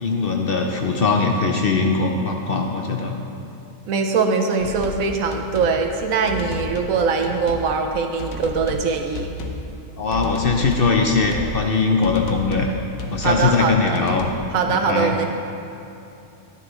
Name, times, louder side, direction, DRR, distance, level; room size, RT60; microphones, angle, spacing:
voice 1, 0.0-3.1 10.0-12.7 13.1-14.3 14.7-15.1, left 4 dB, 55° left, 2 dB, 0.7 m, -21 dB
voice 2, 3.9-9.3 13.2-14.0 14.5-15.3, right 5 dB, 80° right, 4 dB, 1.2 m, -22 dB
sound 1, 4.6-5.0 5.3-5.8 6.3-7.0 7.2-7.7 8.2-8.9 9.1-9.6 10.1-11.5 12.0-12.7 13.0-13.5 13.9-14.3, left 3 dB, 80° left, 1.2 m, -32 dB
10.5 x 9.7 x 3.1 m, 2.8 s
omnidirectional pair, 1.4 m